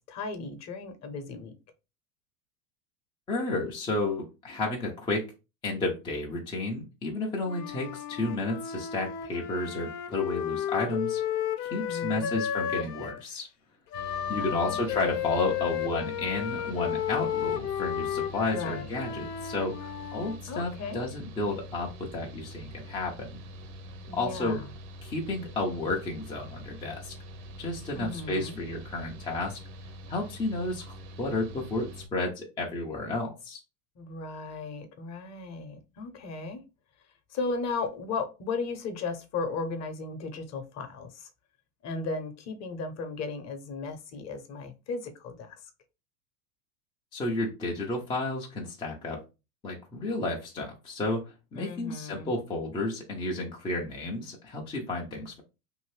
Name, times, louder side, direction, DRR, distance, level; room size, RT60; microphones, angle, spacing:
voice 1, 0.0-1.5 11.8-12.4 14.4-15.0 18.5-18.9 20.5-21.0 24.1-24.7 27.9-28.6 34.0-36.6 37.3-41.3 41.8-45.7 51.6-52.4, left 4 dB, 35° left, 7 dB, 0.8 m, -36 dB
voice 2, 3.3-5.3 5.6-11.2 11.6-13.5 14.3-23.3 24.1-24.6 25.0-27.1 27.6-29.6 30.1-33.6 47.1-49.2 49.6-51.2 51.5-55.4, left 2 dB, 10° left, -1 dB, 0.4 m, -32 dB
Wind instrument woodwind instrument, 7.4-13.2 13.9-20.4, left 9 dB, 80° left, 0.7 m, -33 dB
Mechanical fan, 13.9-32.1, equal, 60° right, 0.8 m, -45 dB
2.7 x 2.5 x 3.1 m, 0.28 s
hypercardioid pair, 105°, 48 cm